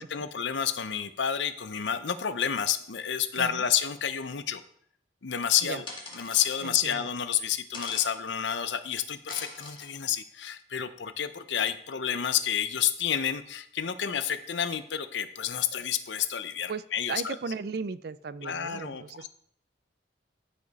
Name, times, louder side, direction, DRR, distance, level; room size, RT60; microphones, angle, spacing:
voice 1, 0.0-4.6 5.2-5.9 6.1-17.3 18.4-19.3, left 9 dB, 75° left, 12 dB, 0.7 m, -30 dB
voice 2, 3.4-3.7 5.6-5.8 6.6-7.1 16.7-19.3, right 4 dB, 55° right, 16 dB, 0.4 m, -36 dB
sound 1, 5.9-6.6 7.7-8.1 9.3-9.9, left 3 dB, 25° left, 1.8 m, -41 dB
13.5 x 5.2 x 4.1 m, 0.66 s
head